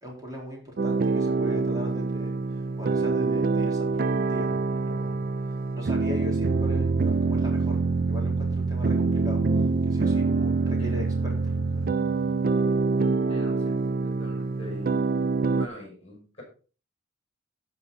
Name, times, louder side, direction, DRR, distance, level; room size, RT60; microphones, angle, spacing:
voice 1, 0.0-3.9 4.3-4.5 4.8-5.2 5.7-9.4 9.9-11.8, equal, 20° right, -1 dB, 3.8 m, -39 dB
sound 1, 0.8-15.7, right 3 dB, 50° right, 0.4 m, -25 dB
sound 2, 6.4-13.2, left 2 dB, 45° left, 3.4 m, -47 dB
voice 2, 13.3-14.9 15.4-16.4, left 1 dB, 30° left, 1 dB, 6.0 m, -43 dB
16.5 x 5.5 x 4.0 m, 0.37 s
head